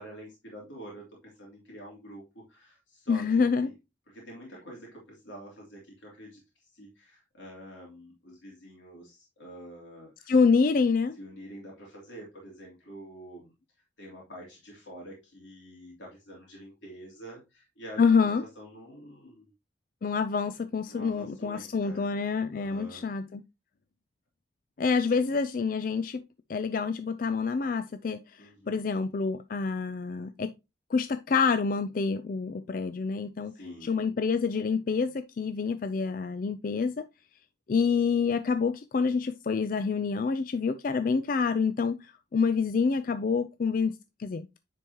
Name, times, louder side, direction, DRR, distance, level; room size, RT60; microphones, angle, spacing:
voice 1, 0.0-3.7 4.1-10.3 11.2-13.5 14.0-19.5 20.9-22.1 22.5-23.0 25.0-25.4 28.4-28.9 33.5-34.1, equal, 70° left, 3.1 m, -47 dB
voice 2, 3.1-3.7 10.3-11.2 18.0-18.4 20.0-23.4 24.8-26.2 26.5-30.5 30.9-33.5 33.8-37.1 37.7-43.9 44.2-44.5, left 5 dB, 45° left, 0.4 m, -27 dB
9.8 x 4.6 x 2.9 m
head